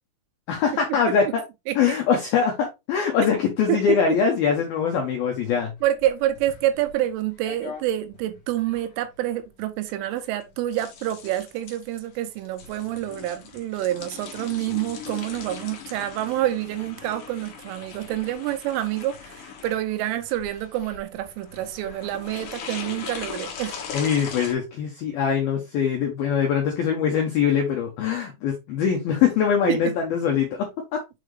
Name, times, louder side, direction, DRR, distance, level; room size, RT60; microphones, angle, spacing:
voice 1, 0.5-1.4 1.8-5.7 23.9-31.0, left 7 dB, 80° left, 2.2 m, -23 dB
voice 2, 3.7-4.2 5.8-23.8 29.7-29.9, right 13 dB, 80° right, 3.2 m, -27 dB
sound 1, 5.8-24.5, left 6 dB, 60° left, 2.2 m, -40 dB
7.5 x 4.1 x 3.3 m
omnidirectional pair, 5.8 m